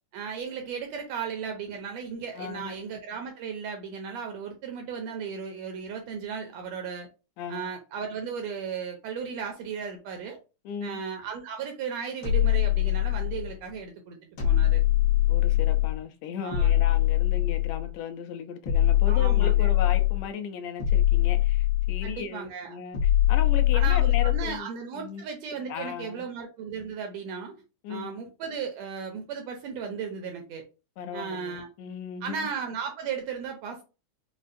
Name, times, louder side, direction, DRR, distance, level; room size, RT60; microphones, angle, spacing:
voice 1, 0.1-7.1 7.5-10.4 10.8-14.2 14.4-14.8 16.4-16.8 19.1-19.7 22.0-22.8 23.7-27.5 27.9-30.6 31.1-31.7 32.2-33.8, right 6 dB, 80° right, 1.6 m, -35 dB
voice 2, 2.4-2.7 7.4-7.6 10.7-11.0 15.3-23.0 23.3-24.7 24.9-25.2 25.7-26.3 27.8-28.1 31.0-32.5, left 7 dB, 75° left, 1.8 m, -36 dB
sound 1, 12.2-13.5 14.4-16.0 16.5-17.9 18.6-20.3 20.8-22.2 22.9-24.5, left 13 dB, 55° left, 1.5 m, -22 dB
5.1 x 2.3 x 2.5 m
omnidirectional pair, 3.5 m